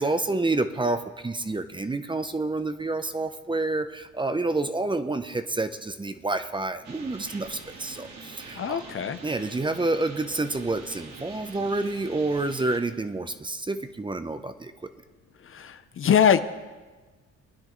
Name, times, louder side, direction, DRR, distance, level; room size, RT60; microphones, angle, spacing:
voice 1, 0.0-8.8 9.2-14.7, right 2 dB, 15° right, 9 dB, 0.7 m, -28 dB
sound 1, 6.8-12.8, right 4 dB, 65° right, 1.9 m, -44 dB
voice 2, 8.5-9.2 15.4-16.4, left 8 dB, 45° left, 11 dB, 0.6 m, -23 dB
22.5 x 10.0 x 3.1 m, 1.3 s
cardioid pair, 90°, 30 cm